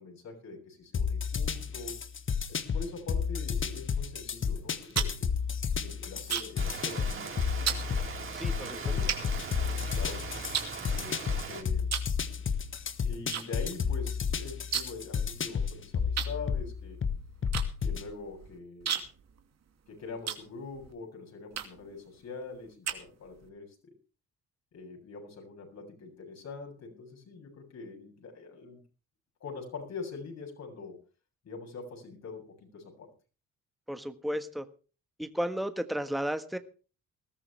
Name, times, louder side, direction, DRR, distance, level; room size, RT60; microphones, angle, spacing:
voice 1, 0.0-2.0 2.5-5.3 5.8-7.8 8.5-10.2 10.9-11.9 13.0-17.0 17.8-19.0 19.9-23.8 24.7-28.8 29.4-31.0 31.4-33.1, left 4 dB, 60° left, 2 dB, 7.7 m, -44 dB
sound 1, 0.9-18.1, left 6 dB, 40° left, 1.5 m, -32 dB
sound 2, 4.6-6.7 7.0-7.3 7.7-7.9 8.5-8.6 9.1-10.0 10.5-11.4 11.8-12.2 12.5-13.4 13.7-13.8 14.1-15.1 15.4-15.5 16.2-20.9 21.5-21.9 22.4-23.5, right 8 dB, 60° right, 2.6 m, -35 dB
Rain, 6.6-11.6, right 5 dB, 45° right, 4.3 m, -40 dB
voice 2, 8.3-8.8 33.9-34.7 35.2-36.6, equal, ahead, 9 dB, 1.5 m, -33 dB
20.5 x 13.5 x 3.4 m, 0.36 s
cardioid pair, 90°, 30 cm